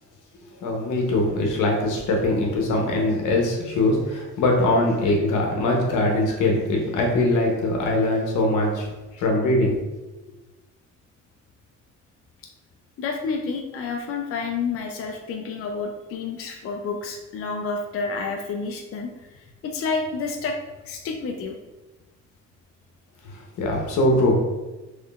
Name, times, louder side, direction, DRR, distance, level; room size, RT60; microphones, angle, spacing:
voice 1, 0.6-8.9 9.1-9.8 23.2-24.4, left 1 dB, 85° left, 0 dB, 0.9 m, -22 dB
voice 2, 13.0-19.1 19.3-20.6 20.8-21.5, left 4 dB, 50° left, 2 dB, 0.5 m, -29 dB
3.6 x 3.2 x 2.4 m, 1.1 s
cardioid pair, 90°, 30 cm